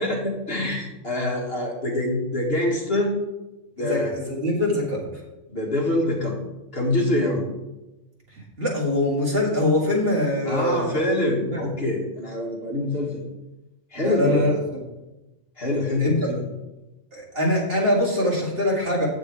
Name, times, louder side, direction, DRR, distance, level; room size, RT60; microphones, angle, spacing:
voice 1, 0.0-3.1 3.8-4.1 5.5-6.4 6.7-7.4 10.5-13.2 13.9-14.5 15.6-16.4, left 1 dB, 50° left, -1 dB, 2.0 m, -25 dB
voice 2, 3.8-5.0 7.1-7.3 8.6-11.0 11.5-11.6 14.0-14.5 16.0-16.1 17.1-19.1, left 1 dB, 50° right, -3 dB, 2.3 m, -23 dB
8.9 x 7.2 x 4.6 m, 1.0 s
omnidirectional pair, 1.3 m